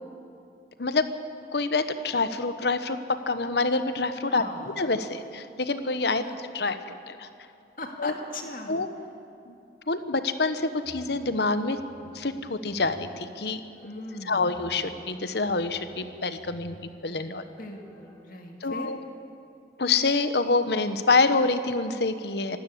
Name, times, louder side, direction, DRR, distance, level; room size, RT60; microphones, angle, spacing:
voice 1, 1.5-4.4 4.8-7.3 8.0-8.1 8.7-8.9 9.5-9.6 9.9-11.8 12.1-13.6 14.3-16.7 17.0-17.4 18.6-19.0 19.8-22.6, left 3 dB, 70° left, 11 dB, 1.0 m, -26 dB
voice 2, 4.3-4.8 6.2-6.4 7.8-8.7 13.8-14.5 17.5-18.9, left 2 dB, 50° left, 3 dB, 2.1 m, -39 dB
sound 1, 10.8-18.2, equal, 15° left, 4.0 m, -52 dB
25.0 x 12.5 x 8.5 m, 2.6 s
head